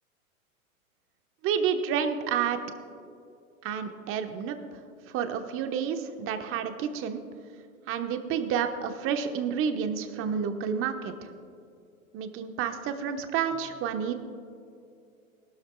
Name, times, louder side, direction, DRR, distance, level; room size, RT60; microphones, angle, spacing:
voice 1, 1.4-2.6 3.6-4.6 5.1-7.2 7.9-11.1 12.1-14.1, right 7 dB, 30° right, 7 dB, 1.1 m, -29 dB
19.0 x 12.5 x 2.3 m, 2.5 s
hypercardioid pair, 110°, 42 cm